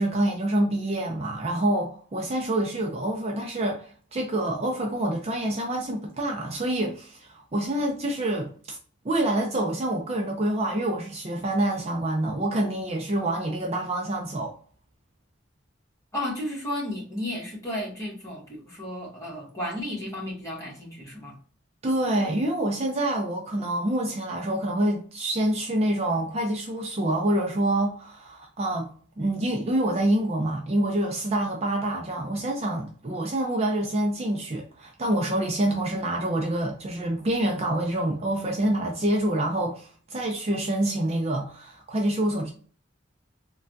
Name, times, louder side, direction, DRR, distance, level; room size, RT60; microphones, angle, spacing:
voice 1, 0.0-8.8 9.0-14.5 21.8-28.9 29.2-42.5, right 1 dB, 35° right, 0.5 m, -26 dB
voice 2, 16.1-21.4, left 1 dB, 15° left, 1.2 m, -33 dB
3.3 x 2.3 x 2.6 m
head